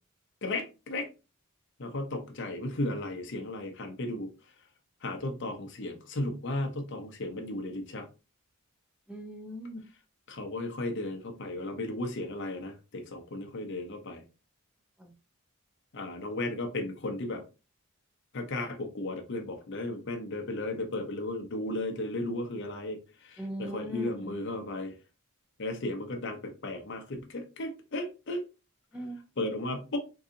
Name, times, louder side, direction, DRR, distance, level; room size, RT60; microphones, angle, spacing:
voice 1, 0.4-1.1 1.8-4.3 5.0-8.0 10.3-14.2 15.9-17.4 18.3-23.0 23.3-24.9 25.6-28.4 29.4-30.0, left 2 dB, 55° left, 0.7 m, -35 dB
voice 2, 9.1-9.9 15.0-15.1 23.4-24.3 28.9-29.3, equal, 5° right, 0.7 m, -39 dB
3.9 x 2.7 x 2.5 m
head